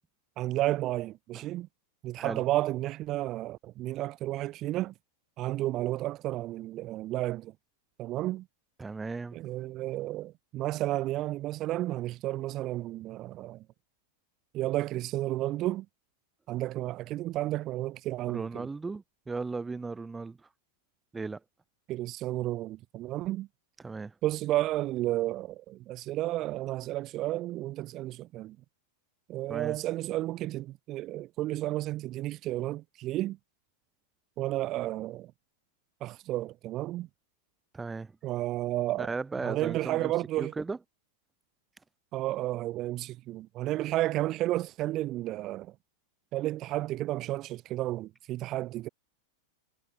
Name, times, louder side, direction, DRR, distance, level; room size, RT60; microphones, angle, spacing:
voice 1, 0.4-1.7 2.0-4.9 5.4-7.5 8.0-8.4 9.3-13.6 14.5-15.8 16.5-18.7 21.9-23.5 24.2-28.6 29.3-33.4 34.4-35.3 36.0-37.1 38.2-39.1 39.4-40.5 42.1-45.7 46.3-48.9, right 15 dB, 35° right, 3.1 m, -32 dB
voice 2, 8.8-9.4 18.3-20.5 21.1-21.4 23.8-24.2 29.5-29.8 37.7-38.2 39.0-40.1 40.4-40.8, right 4 dB, 10° right, 3.5 m, -36 dB
figure-of-eight pair, 90°, 0 cm